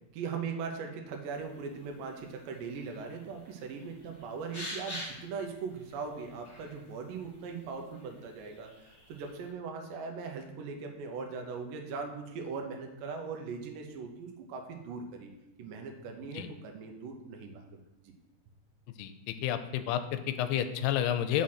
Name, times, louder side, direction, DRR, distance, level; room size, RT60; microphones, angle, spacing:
voice 1, 0.1-15.3 15.6-18.1, right 5 dB, 70° right, 3 dB, 2.2 m, -40 dB
sound 1, 1.3-9.5, left 1 dB, 30° left, 2.0 m, -48 dB
voice 2, 19.0-21.4, left 10 dB, 85° left, 9 dB, 2.6 m, -30 dB
6.3 x 3.9 x 5.8 m, 0.93 s
omnidirectional pair, 4.6 m